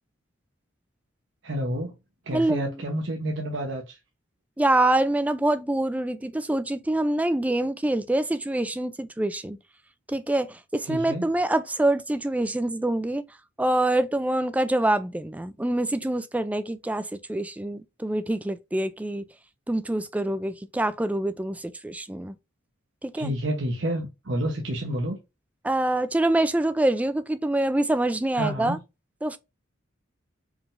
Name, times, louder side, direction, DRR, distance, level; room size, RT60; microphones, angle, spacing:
voice 1, 1.4-1.9 2.3-4.0 10.8-11.3 23.2-25.2 28.3-28.8, right 1 dB, 60° right, 0.9 m, -29 dB
voice 2, 2.3-2.7 4.6-9.6 10.1-13.2 13.6-19.2 19.7-22.4 23.0-23.3 25.6-28.8 29.2-29.4, right 1 dB, 5° right, 0.3 m, -25 dB
4.7 x 3.7 x 2.5 m
head